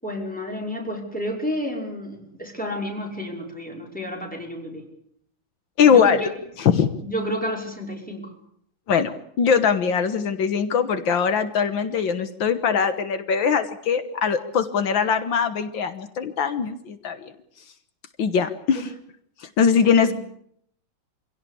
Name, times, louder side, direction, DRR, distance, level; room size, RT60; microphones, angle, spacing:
voice 1, 0.0-4.8 5.8-6.3 7.0-8.3 18.7-18.9 19.8-20.1, equal, 5° left, 0 dB, 5.7 m, -31 dB
voice 2, 5.8-6.3 6.6-6.9 8.9-17.3 18.2-18.9 19.6-20.1, left 6 dB, 80° left, 10 dB, 2.0 m, -21 dB
26.0 x 17.0 x 8.5 m, 0.68 s
omnidirectional pair, 2.1 m